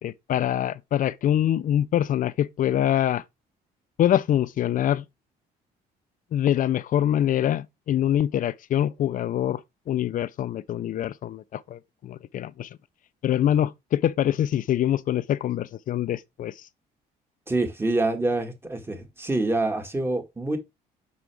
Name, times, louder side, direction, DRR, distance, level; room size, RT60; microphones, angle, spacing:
voice 1, 0.0-3.2 4.0-5.0 6.3-9.6 9.9-12.7 13.2-16.5, left 11 dB, 50° left, 0.6 m, -24 dB
voice 2, 17.5-20.6, right 2 dB, 15° right, 1.8 m, -26 dB
6.2 x 5.8 x 3.5 m
cardioid pair, 110°, 17 cm